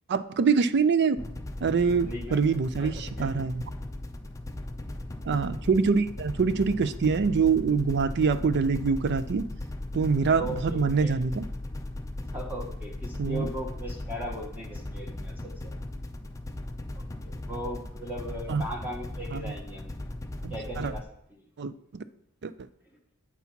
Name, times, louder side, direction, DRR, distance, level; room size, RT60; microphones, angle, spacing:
voice 1, 0.1-1.2 1.6-3.6 5.2-9.5 9.9-11.4 13.2-13.5 18.5-18.6 19.3-19.5 20.4-20.9 21.6-22.0 22.4-22.7, right 5 dB, 50° right, 14 dB, 0.4 m, -25 dB
sound 1, 1.2-21.0, left 1 dB, 15° left, 0.5 m, -37 dB
voice 2, 2.1-3.4 4.8-5.0 10.4-11.1 12.2-15.7 16.9-19.9 20.5-21.0 21.3-21.4, equal, 10° right, 1 dB, 0.9 m, -39 dB
8.3 x 4.2 x 5.8 m, 0.72 s
head